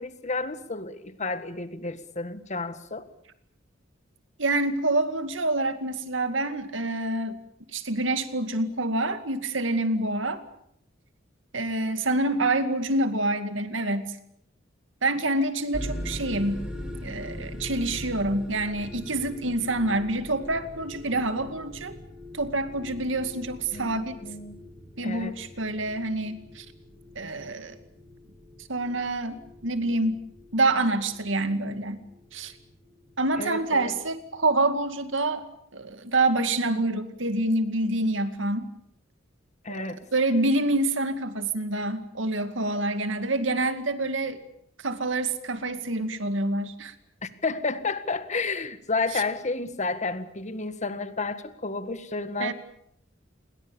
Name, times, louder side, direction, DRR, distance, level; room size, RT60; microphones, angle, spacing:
voice 1, 0.0-3.1 23.7-24.6 25.0-25.4 33.4-33.9 39.6-40.0 47.2-52.5, left 3 dB, 40° left, 11 dB, 1.8 m, -31 dB
voice 2, 4.4-7.4 7.7-10.4 11.5-14.2 15.0-16.7 17.0-22.0 22.3-24.2 25.0-26.7 27.2-27.8 28.7-30.2 30.5-32.0 32.3-32.5 33.2-35.4 35.7-38.6 39.7-44.4 44.8-46.9 49.1-49.2 52.4-52.5, right 2 dB, 70° right, 9 dB, 2.3 m, -27 dB
sound 1, 15.7-34.3, left 1 dB, 5° right, 5.8 m, -42 dB
28.5 x 22.0 x 7.1 m, 0.71 s
head